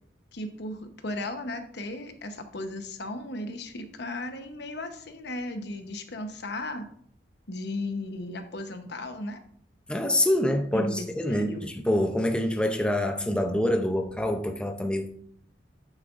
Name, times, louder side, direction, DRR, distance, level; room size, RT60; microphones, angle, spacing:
voice 1, 0.3-6.9 7.5-9.4 10.7-11.7, left 2 dB, 65° left, 1.0 m, -35 dB
voice 2, 9.9-15.1, left 1 dB, 5° left, 0.5 m, -26 dB
9.0 x 7.6 x 2.5 m
head